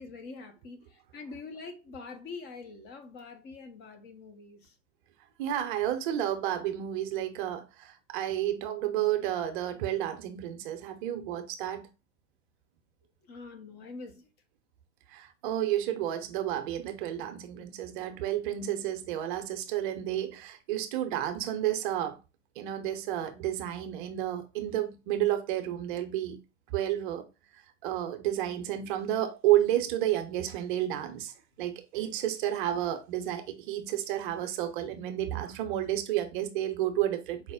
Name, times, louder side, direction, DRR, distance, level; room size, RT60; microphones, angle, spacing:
voice 1, 0.0-4.8 13.2-14.3, left 4 dB, 30° left, 0.7 m, -45 dB
voice 2, 5.4-11.9 15.1-22.2 22.6-26.4 26.7-27.3 27.8-37.5, right 12 dB, 45° right, 0.7 m, -31 dB
4.8 x 2.1 x 3.5 m
figure-of-eight pair, 100°, 36 cm